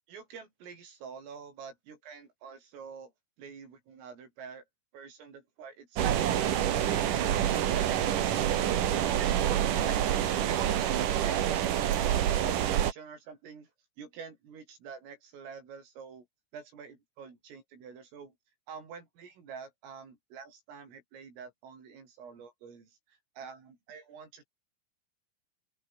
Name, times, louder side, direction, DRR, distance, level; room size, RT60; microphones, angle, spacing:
voice 1, 0.1-3.1 3.4-4.6 4.9-7.4 11.2-13.7 14.0-16.3 16.5-18.4 18.7-24.5, right 6 dB, 80° right, 8.7 m, -47 dB
sound 1, 6.0-12.9, right 10 dB, 55° right, 2.5 m, -27 dB
open air
omnidirectional pair, 5.8 m